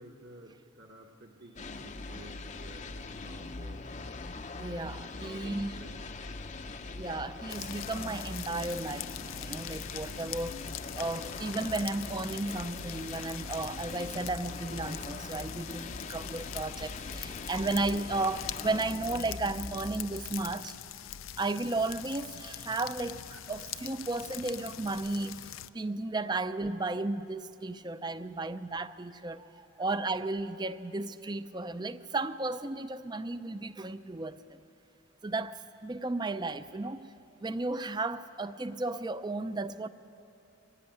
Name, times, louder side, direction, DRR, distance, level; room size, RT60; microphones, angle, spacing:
voice 1, 0.0-3.8 5.2-6.0 23.3-23.5 29.8-29.9, right 1 dB, 55° right, 1.4 m, -52 dB
sound 1, 1.6-20.6, left 3 dB, 35° left, 0.7 m, -42 dB
voice 2, 4.4-5.7 6.9-10.6 11.0-20.7 21.4-23.2 23.5-25.4 25.7-34.6 35.2-37.1 37.4-39.9, right 2 dB, 20° right, 0.5 m, -34 dB
sound 2, 7.5-25.7, left 11 dB, 80° left, 0.5 m, -43 dB
24.0 x 15.5 x 9.5 m
head